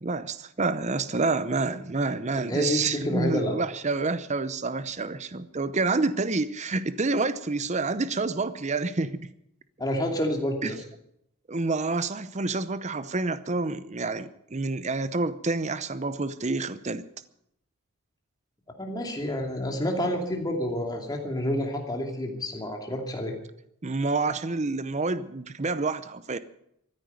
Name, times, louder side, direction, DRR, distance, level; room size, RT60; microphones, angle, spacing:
voice 1, 0.0-9.2 10.6-10.8 11.5-17.0 23.8-26.4, right 3 dB, 30° right, 0.7 m, -28 dB
voice 2, 2.5-3.6 9.8-10.8 18.8-23.3, left 1 dB, 15° left, 2.6 m, -29 dB
14.5 x 9.9 x 9.3 m
head